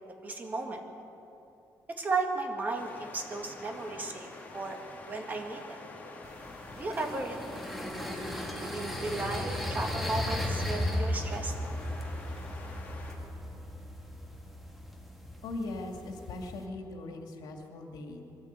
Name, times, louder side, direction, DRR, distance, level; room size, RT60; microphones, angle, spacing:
voice 1, 0.2-0.8 2.0-4.8 5.1-5.8 6.8-7.4 7.6-7.8 8.6-11.5, right 3 dB, 25° right, 3 dB, 2.0 m, -35 dB
sound 1, 2.7-13.2, left 2 dB, 25° left, 2.3 m, -47 dB
sound 2, 6.2-16.7, left 1 dB, ahead, 1.8 m, -36 dB
voice 2, 15.4-18.2, left 2 dB, 75° left, 3 dB, 2.4 m, -39 dB
22.5 x 14.5 x 8.3 m, 2.8 s
cardioid pair, 180°, 7 cm